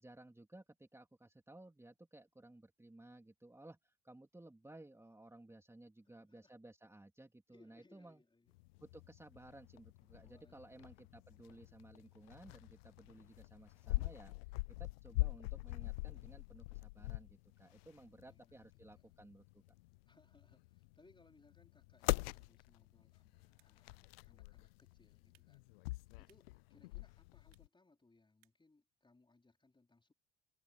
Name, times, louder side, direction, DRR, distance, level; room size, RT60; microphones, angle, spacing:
voice 1, 0.0-8.2 8.8-14.3 14.8-19.6, right 1 dB, 10° right, 3.2 m, -58 dB
voice 2, 6.0-6.5 7.5-8.5 10.2-11.1 18.3-18.6 18.8-19.0 20.1-25.7 26.2-30.1, left 2 dB, 15° left, 4.5 m, -69 dB
sound 1, 8.5-27.7, left 22 dB, 85° left, 0.5 m, -44 dB
sound 2, 21.9-28.8, right 19 dB, 85° right, 4.7 m, -81 dB
hypercardioid pair, 70°, 29 cm